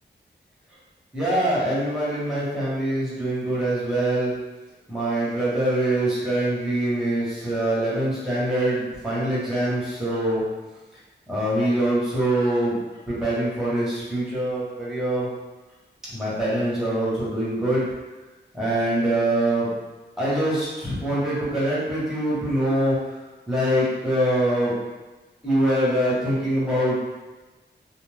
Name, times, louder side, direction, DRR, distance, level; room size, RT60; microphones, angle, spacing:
voice 1, 1.1-4.3 4.9-10.4 11.3-12.8 13.1-15.3 16.1-17.9 18.5-19.7 20.2-23.0 23.5-24.7 25.4-27.1, right 1 dB, ahead, -9 dB, 1.2 m, -24 dB
2.5 x 2.1 x 3.3 m, 1.2 s
wide cardioid pair, 105°, 19 cm